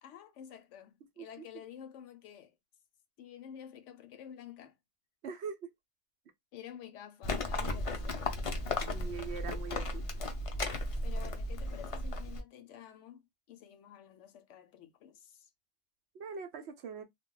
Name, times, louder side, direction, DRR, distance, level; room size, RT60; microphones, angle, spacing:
voice 1, 0.0-2.5 3.2-4.7 6.5-8.2 11.0-13.2 13.5-15.5, left 9 dB, 75° left, 0.9 m, -50 dB
voice 2, 5.2-5.7 8.9-10.0 16.1-17.0, right 6 dB, 65° right, 0.8 m, -42 dB
Livestock farm animals working animals, 7.2-12.4, left 2 dB, 55° left, 0.4 m, -35 dB
2.2 x 2.2 x 3.6 m
omnidirectional pair, 1.3 m